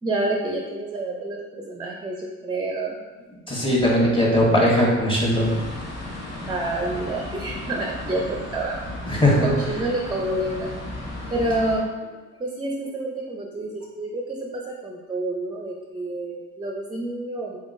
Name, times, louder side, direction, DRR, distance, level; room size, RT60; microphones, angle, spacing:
voice 1, 0.0-3.0 6.5-8.8 9.4-10.7 11.3-11.8 12.4-17.6, right 2 dB, 15° right, 0 dB, 0.4 m, -28 dB
voice 2, 3.5-5.5 9.1-9.5, left 1 dB, 15° left, -4 dB, 1.2 m, -19 dB
sound 1, 5.3-11.8, left 1 dB, 60° left, 1.3 m, -35 dB
3.8 x 3.6 x 2.5 m, 1.3 s
cardioid pair, 90°, 30 cm